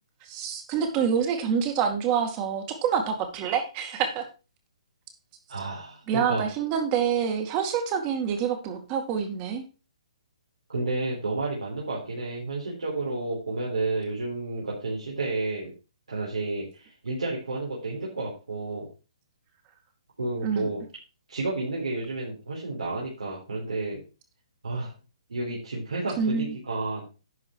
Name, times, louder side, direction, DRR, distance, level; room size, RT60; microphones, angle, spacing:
voice 1, 0.2-4.3 6.1-9.6 20.4-20.7 26.2-26.5, right 7 dB, 30° right, 5 dB, 2.2 m, -27 dB
voice 2, 5.5-6.4 10.7-15.7 16.1-18.9 20.2-20.8 21.3-24.0 24.6-24.9 25.3-27.1, right 2 dB, 85° right, -4 dB, 3.9 m, -31 dB
11.0 x 5.3 x 4.7 m, 0.32 s
hypercardioid pair, 145°, 3 cm